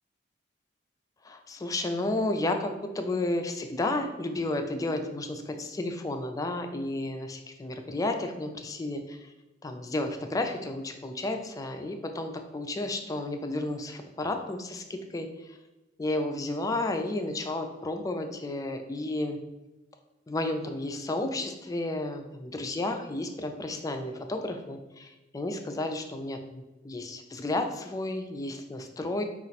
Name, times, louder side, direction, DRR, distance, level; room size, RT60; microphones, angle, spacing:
voice 1, 1.2-9.3 9.6-15.6 16.0-19.4 20.3-29.2, left 2 dB, 20° left, 5 dB, 0.3 m, -32 dB
4.2 x 2.4 x 4.1 m, 1.0 s
head